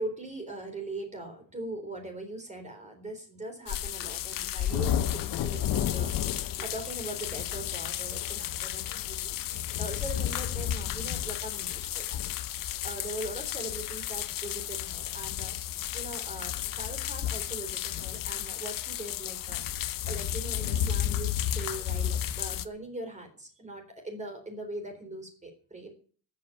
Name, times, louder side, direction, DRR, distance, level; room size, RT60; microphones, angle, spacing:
voice 1, 0.0-15.6 15.9-25.9, right 2 dB, 20° right, 4 dB, 3.8 m, -41 dB
sound 1, 3.7-22.6, left 11 dB, 60° left, 1.0 m, -32 dB
13.5 x 8.6 x 9.1 m, 0.43 s
cardioid pair, 140°, 38 cm